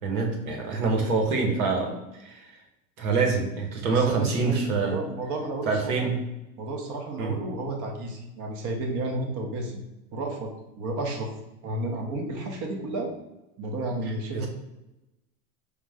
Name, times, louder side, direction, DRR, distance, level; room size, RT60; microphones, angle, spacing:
voice 1, 0.0-2.5 3.0-5.0 5.7-6.2 7.2-7.3 14.3-14.5, right 4 dB, 80° right, 1 dB, 1.2 m, -26 dB
voice 2, 3.9-5.9 6.6-9.8 10.1-10.5 10.8-11.3 11.6-13.1 13.6-14.5, right 2 dB, 45° right, 2 dB, 1.0 m, -32 dB
5.1 x 2.1 x 4.8 m, 0.96 s
hypercardioid pair, 95°, 42 cm